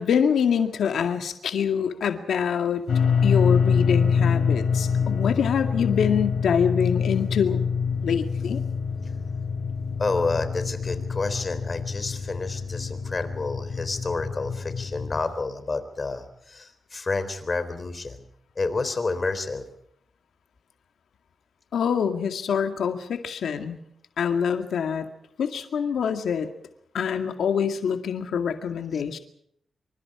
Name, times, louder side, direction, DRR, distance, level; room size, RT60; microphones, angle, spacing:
voice 1, 0.0-2.8 3.2-7.6 8.0-8.6 21.7-23.8 24.2-25.1 25.4-26.5 26.9-29.2, left 7 dB, 90° left, 6 dB, 2.1 m, -25 dB
sound 1, 2.9-15.2, left 6 dB, 75° left, 5.7 m, -25 dB
voice 2, 10.0-18.2 18.6-19.7 28.9-29.0, left 3 dB, 35° left, 10 dB, 3.8 m, -29 dB
27.0 x 25.5 x 4.9 m, 0.69 s
cardioid pair, 95°, 0 cm